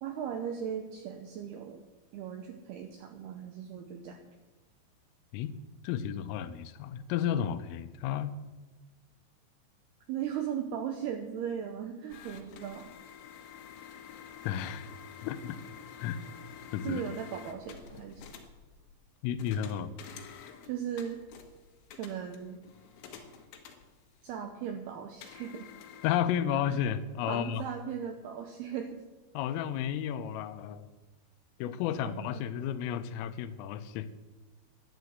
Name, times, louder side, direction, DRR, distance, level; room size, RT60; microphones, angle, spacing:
voice 1, 0.0-1.8 2.1-4.2 10.1-12.9 16.8-18.3 20.7-21.2 22.0-22.6 24.2-25.7 27.3-29.0 32.1-32.4, right 8 dB, 80° right, 6 dB, 2.3 m, -37 dB
voice 2, 5.8-8.4 14.4-14.9 15.2-15.6 16.0-16.2 16.7-17.0 19.2-19.9 26.0-27.6 29.3-30.9 31.6-34.1, left 9 dB, 85° left, 12 dB, 3.4 m, -32 dB
sound 1, 12.1-24.4 25.2-26.1, left 8 dB, 70° left, 3.8 m, -49 dB
12.5 x 10.5 x 7.9 m, 1.2 s
omnidirectional pair, 5.8 m